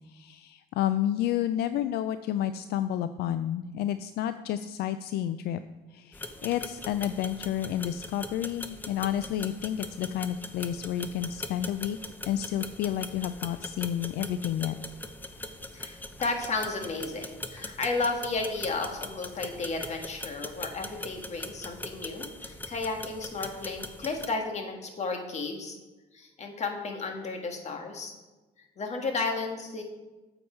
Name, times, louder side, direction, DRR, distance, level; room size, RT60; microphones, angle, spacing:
voice 1, 0.1-5.6 5.9-12.0 12.3-14.7, left 11 dB, 75° left, 12 dB, 0.4 m, -30 dB
sound 1, 6.1-24.3, left 2 dB, 10° left, 0.7 m, -41 dB
voice 2, 15.7-25.8 26.1-28.1 28.8-29.8, left 3 dB, 40° left, 4 dB, 1.6 m, -33 dB
8.7 x 7.0 x 4.4 m, 1.2 s
cardioid pair, 110°, 17 cm